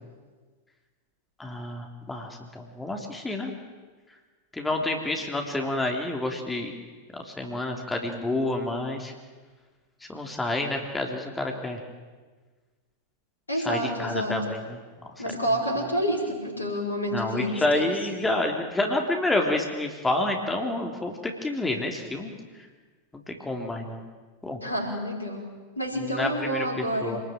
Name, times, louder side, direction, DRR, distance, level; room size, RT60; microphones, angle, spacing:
voice 1, 1.4-3.5 4.5-6.7 7.1-9.1 10.1-11.8 13.5-14.8 15.0-15.1 17.1-22.3 23.3-24.0 24.4-24.6 26.0-27.2, left 2 dB, 10° left, 2 dB, 3.3 m, -29 dB
voice 2, 13.5-14.4 15.2-17.9 24.6-25.5 25.8-27.2, equal, 80° left, 3 dB, 5.4 m, -29 dB
27.0 x 20.5 x 9.0 m, 1.4 s
figure-of-eight pair, 90°, 0 cm